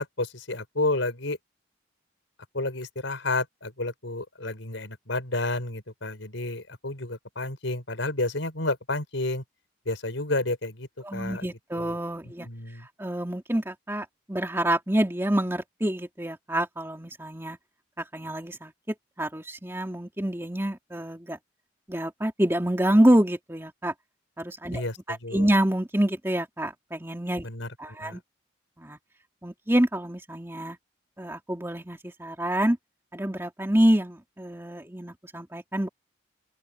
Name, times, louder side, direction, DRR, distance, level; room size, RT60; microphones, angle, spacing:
voice 1, 0.0-1.4 2.5-9.4 9.8-12.0 12.2-12.9 24.7-25.5 27.4-27.7 28.0-28.2, left 2 dB, 80° left, 4.9 m, -31 dB
voice 2, 11.0-12.5 13.0-17.6 18.0-21.4 21.9-23.9 24.4-24.8 25.1-27.5 27.8-28.2 28.8-29.0 29.4-30.8 31.2-32.8 33.1-35.9, right 1 dB, 10° right, 2.6 m, -27 dB
open air
head